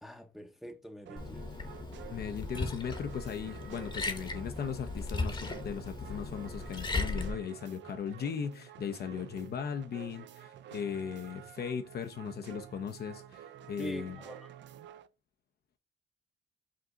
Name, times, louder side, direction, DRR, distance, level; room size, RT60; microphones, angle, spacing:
voice 1, 0.0-1.5 13.8-14.5, right 1 dB, ahead, 0.6 m, -44 dB
sound 1, 1.1-15.1, right 11 dB, 65° right, 0.5 m, -50 dB
Liquid, 1.2-7.3, left 3 dB, 25° left, 0.9 m, -37 dB
voice 2, 2.1-14.2, left 7 dB, 55° left, 0.6 m, -38 dB
5.1 x 2.7 x 3.7 m
cardioid pair, 90°, 20 cm